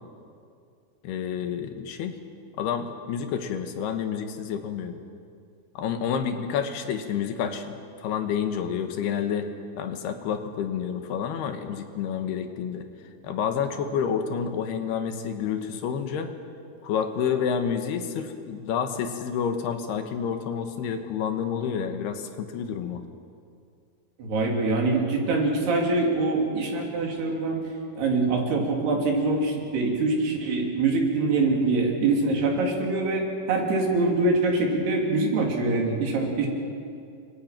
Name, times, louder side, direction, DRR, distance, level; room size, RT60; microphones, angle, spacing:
voice 1, 1.0-2.2 2.6-5.0 5.8-9.5 9.8-12.9 13.2-16.3 16.8-23.0, left 7 dB, 80° left, 7 dB, 3.5 m, -29 dB
voice 2, 24.2-27.6 28.0-36.5, right 3 dB, 85° right, 0 dB, 5.4 m, -24 dB
29.5 x 24.5 x 6.0 m, 2.4 s
omnidirectional pair, 4.5 m